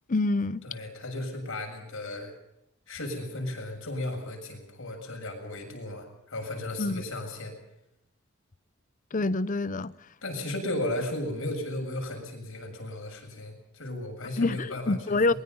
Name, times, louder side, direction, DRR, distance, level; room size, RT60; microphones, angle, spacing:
voice 1, 0.1-0.6 6.8-7.0 9.1-9.9 14.4-15.3, left 2 dB, 40° left, 0.7 m, -26 dB
voice 2, 0.6-2.3 2.9-7.5 10.2-15.4, left 1 dB, 65° left, 7.1 m, -35 dB
23.0 x 21.0 x 5.5 m
head